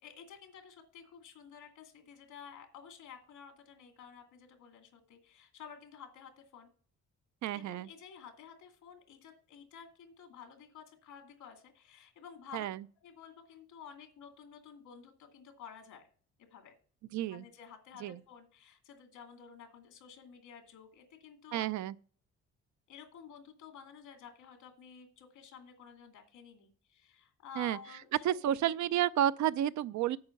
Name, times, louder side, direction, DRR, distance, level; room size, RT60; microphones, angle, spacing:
voice 1, 0.0-6.7 7.5-12.7 12.9-16.1 16.4-16.7 17.3-21.8 22.9-28.4, left 7 dB, 85° left, 2.4 m, -52 dB
voice 2, 7.4-7.9 12.5-12.8 17.1-17.4 18.0-18.2 21.5-21.9 27.6-27.8 28.2-30.2, right 11 dB, 70° right, 0.6 m, -31 dB
8.7 x 5.3 x 7.1 m
cardioid pair, 90°, 30 cm